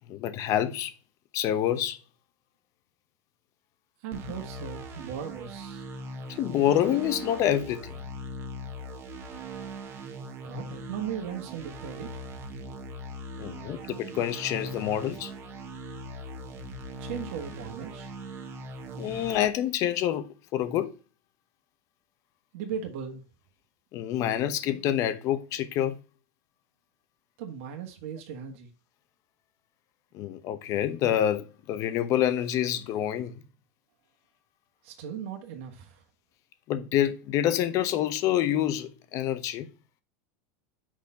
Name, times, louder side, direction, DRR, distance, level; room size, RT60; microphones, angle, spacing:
voice 1, 0.1-0.9 1.3-2.0 6.3-8.0 13.4-15.3 19.0-20.9 23.9-26.0 30.1-33.4 36.7-39.7, left 11 dB, 45° left, 0.9 m, -27 dB
voice 2, 4.0-5.8 10.4-12.3 17.0-18.1 22.5-23.2 27.4-28.7 34.8-36.0, right 8 dB, 65° right, 1.6 m, -37 dB
sound 1, 4.1-19.5, right 1 dB, 30° right, 1.4 m, -40 dB
6.0 x 4.3 x 5.6 m
supercardioid pair, 135°, 8 cm